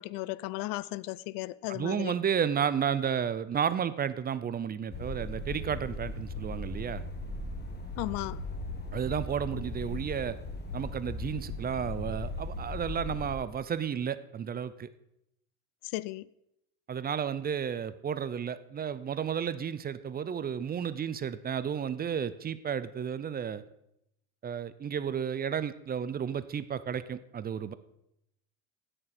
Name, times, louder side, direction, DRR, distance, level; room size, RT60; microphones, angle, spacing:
voice 1, 0.0-2.1 8.0-8.4 15.8-16.3, left 19 dB, 70° left, 0.5 m, -35 dB
voice 2, 1.7-7.0 8.9-10.4 10.7-14.9 16.9-23.6 24.4-27.7, right 8 dB, 25° right, 0.5 m, -32 dB
sound 1, 4.9-13.3, left 2 dB, 30° left, 1.7 m, -38 dB
16.5 x 6.7 x 4.3 m
supercardioid pair, 105°, 35 cm